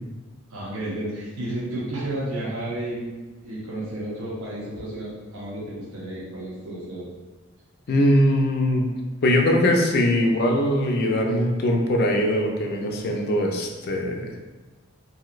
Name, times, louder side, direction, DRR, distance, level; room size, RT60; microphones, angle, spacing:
voice 1, 0.5-3.1 3.4-7.1, right 1 dB, 80° right, -7 dB, 0.7 m, -32 dB
voice 2, 7.9-8.8 9.2-14.3, left 1 dB, 50° left, 2 dB, 0.4 m, -21 dB
3.0 x 2.7 x 2.4 m, 1.2 s
head